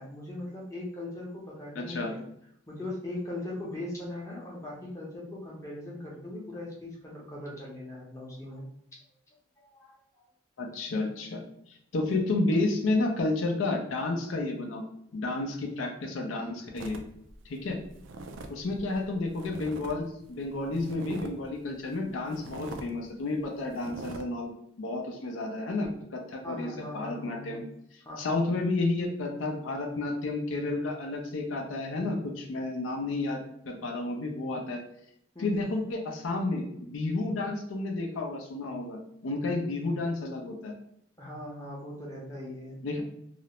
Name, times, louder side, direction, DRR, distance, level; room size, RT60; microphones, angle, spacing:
voice 1, 0.0-2.2 2.7-8.6 9.6-10.3 26.4-27.6 28.0-28.4 35.3-35.7 41.2-42.8, left 1 dB, 15° left, -4 dB, 0.6 m, -40 dB
voice 2, 1.7-2.1 10.6-11.4 11.7-14.8 15.1-17.0 17.5-17.8 18.5-24.5 24.8-27.6 28.2-33.4 33.7-34.8 35.4-40.7 42.8-43.0, left 2 dB, 85° left, 2 dB, 0.4 m, -31 dB
sound 1, 16.8-20.0 20.2-21.5 21.9-22.0 22.3-22.9 23.3-23.4 23.7-24.2, right 2 dB, 75° right, 0.3 m, -43 dB
2.4 x 2.0 x 2.9 m, 0.74 s
head